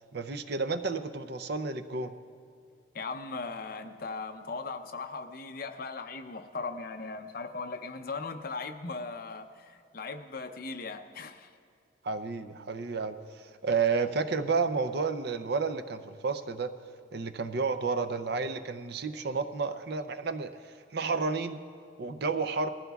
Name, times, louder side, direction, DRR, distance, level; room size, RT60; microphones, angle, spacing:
voice 1, 0.1-2.1 12.0-16.7 17.1-20.5 20.9-21.6 22.0-22.7, right 4 dB, 60° right, 9 dB, 0.5 m, -31 dB
voice 2, 2.9-11.5, left 4 dB, 50° left, 7 dB, 0.7 m, -38 dB
19.5 x 15.0 x 2.3 m, 2.4 s
head